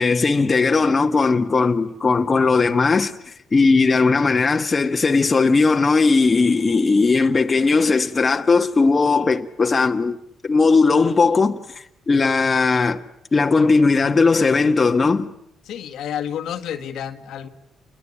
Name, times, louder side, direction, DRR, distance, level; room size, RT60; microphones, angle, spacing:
voice 1, 0.0-10.2 10.4-11.6 12.1-13.0 13.3-15.3, left 4 dB, 30° left, 1.6 m, -18 dB
voice 2, 15.7-17.5, left 9 dB, 80° left, 1.9 m, -30 dB
29.0 x 22.0 x 8.6 m
cardioid pair, 90°, 0 cm